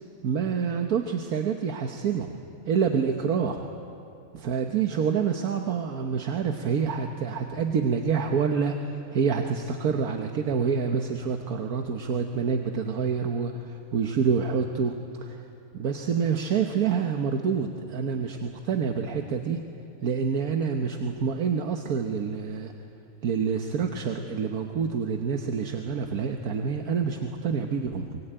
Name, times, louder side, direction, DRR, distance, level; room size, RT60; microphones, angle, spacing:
voice 1, 0.2-2.4 2.7-3.7 4.3-15.0 15.2-15.4 15.7-19.6 20.0-22.7 23.2-28.2, right 6 dB, 75° right, 4 dB, 1.6 m, -27 dB
24.0 x 21.0 x 8.9 m, 2.7 s
omnidirectional pair, 1.6 m